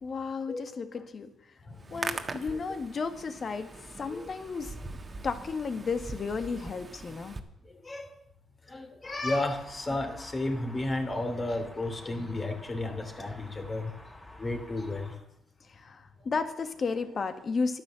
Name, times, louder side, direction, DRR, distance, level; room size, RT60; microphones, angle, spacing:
voice 1, 0.0-1.3 1.9-3.7 4.0-4.7 5.2-7.4 15.7-17.8, left 4 dB, 45° left, 8 dB, 1.7 m, -33 dB
Hands, 1.7-7.4, right 3 dB, 30° right, 1.6 m, -41 dB
voice 2, 8.7-13.9 14.4-15.1, left 2 dB, 25° left, 5 dB, 2.9 m, -32 dB
sound 1, 9.0-15.2, left 1 dB, 10° left, 4.6 m, -50 dB
12.5 x 10.0 x 7.6 m, 0.81 s
cardioid pair, 90°, 0 cm